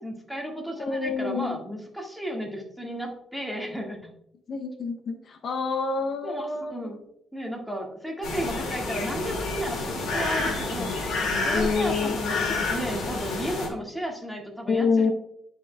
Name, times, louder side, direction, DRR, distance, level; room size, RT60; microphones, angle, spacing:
voice 1, 0.0-4.1 6.2-6.4 6.7-7.0 7.3-10.9 11.4-15.1, equal, ahead, -1 dB, 1.8 m, -34 dB
voice 2, 0.8-1.6 4.5-7.0 10.1-10.4 10.7-11.0 11.5-12.8 14.7-15.1, left 4 dB, 55° left, 6 dB, 0.7 m, -28 dB
sound 1, 8.2-13.7, left 3 dB, 75° left, 2.1 m, -29 dB
11.0 x 5.0 x 2.3 m, 0.76 s
cardioid pair, 90°, 0 cm